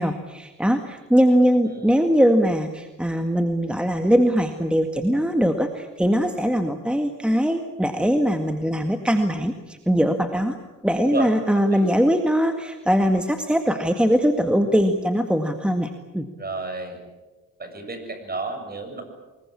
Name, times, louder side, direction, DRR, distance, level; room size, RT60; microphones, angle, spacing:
voice 1, 0.0-10.6 10.8-16.3, equal, 5° right, 5 dB, 1.9 m, -21 dB
voice 2, 16.4-17.0 17.6-19.0, right 3 dB, 30° right, 6 dB, 7.2 m, -31 dB
24.5 x 21.5 x 8.7 m, 1.2 s
cardioid pair, 90°, 30 cm